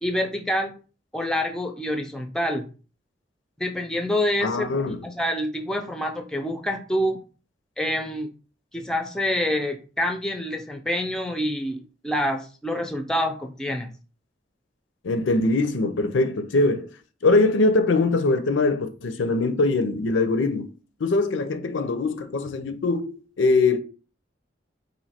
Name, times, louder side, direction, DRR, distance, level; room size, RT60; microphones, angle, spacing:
voice 1, 0.0-0.7 1.1-2.7 3.6-7.2 7.8-8.3 8.7-13.9, equal, 5° left, 0.4 m, -27 dB
voice 2, 4.4-5.0 15.0-16.9 17.2-20.7 21.0-23.8, left 3 dB, 80° left, 0.5 m, -22 dB
3.0 x 2.6 x 4.2 m
head